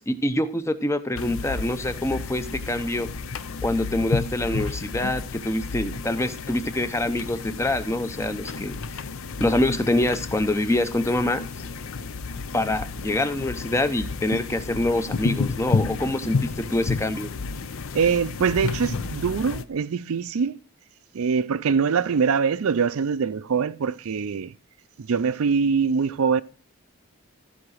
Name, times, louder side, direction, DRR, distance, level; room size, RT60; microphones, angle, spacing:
voice 1, 0.0-3.1 3.6-8.8 9.4-11.4 12.5-17.3, left 1 dB, 15° left, 0.6 m, -25 dB
sound 1, 1.1-19.6, left 4 dB, 70° left, 0.6 m, -31 dB
voice 2, 17.9-20.6 21.1-24.5 25.0-26.4, right 6 dB, 80° right, 0.4 m, -23 dB
14.0 x 4.9 x 6.3 m
head